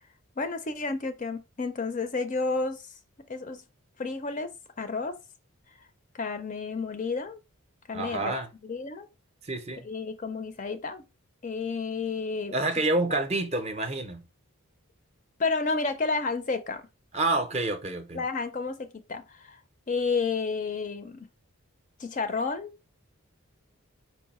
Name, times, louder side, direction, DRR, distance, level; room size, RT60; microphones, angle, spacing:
voice 1, 0.4-2.8 3.3-3.6 4.0-4.5 4.8-5.2 6.1-7.4 7.9-8.4 8.6-9.1 9.8-11.0 11.4-12.6 13.1-13.2 15.4-16.8 18.1-19.6 19.9-21.3 22.0-22.7, left 4 dB, 35° left, 0.4 m, -31 dB
voice 2, 7.9-8.5 9.4-9.9 12.5-14.2 17.1-18.2, right 2 dB, 30° right, 0.6 m, -28 dB
4.7 x 2.6 x 4.1 m
head